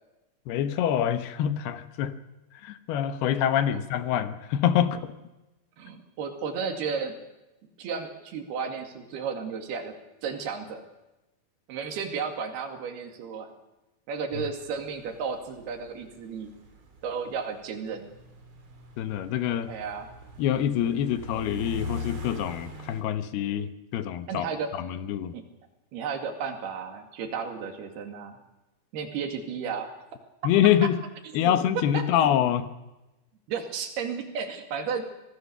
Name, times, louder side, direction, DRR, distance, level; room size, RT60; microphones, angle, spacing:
voice 1, 0.5-2.1 2.6-5.1 14.4-14.5 19.0-19.7 20.4-24.5 24.8-25.4 30.4-31.0 31.3-32.7, left 10 dB, 80° left, 11 dB, 3.1 m, -25 dB
voice 2, 5.8-7.2 7.8-10.0 10.2-10.8 11.7-13.5 14.1-16.5 17.0-18.1 19.7-20.1 24.3-24.7 25.3-25.4 25.9-28.4 28.9-30.0 31.4-31.5 31.9-32.3 33.5-35.1, right 6 dB, 75° right, 6 dB, 4.3 m, -33 dB
sound 1, 14.5-23.0, left 1 dB, 40° right, 3.9 m, -41 dB
25.5 x 18.5 x 6.8 m, 1.0 s
omnidirectional pair, 4.6 m